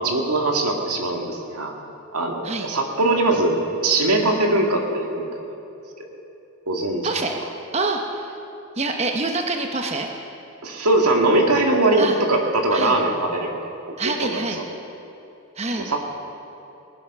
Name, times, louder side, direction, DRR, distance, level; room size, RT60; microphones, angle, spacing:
voice 1, 0.0-1.7 2.1-5.4 6.0-6.2 6.7-7.1 10.6-13.5 14.2-14.4 15.9-16.1, right 2 dB, 90° right, 2 dB, 2.0 m, -21 dB
voice 2, 7.0-7.3 7.7-8.4 8.8-10.1 12.0-12.2 12.7-12.9 14.0-14.6 15.6-15.9, right 3 dB, 30° right, 3 dB, 0.8 m, -26 dB
19.5 x 10.0 x 6.0 m, 2.8 s
head